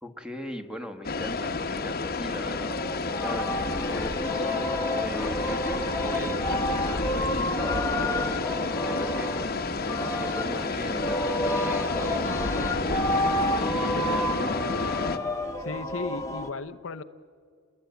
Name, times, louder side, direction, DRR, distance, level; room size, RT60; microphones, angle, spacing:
voice 1, 0.0-2.8 3.2-9.3 9.9-13.0 13.5-15.0, equal, 5° right, 5 dB, 1.4 m, -39 dB
sound 1, 1.0-15.2, left 3 dB, 45° left, 1.1 m, -30 dB
Singing, 2.8-16.5, left 1 dB, 15° left, 1.2 m, -30 dB
voice 2, 15.6-17.0, left 4 dB, 70° left, 9 dB, 0.7 m, -35 dB
29.0 x 20.5 x 8.2 m, 2.2 s
head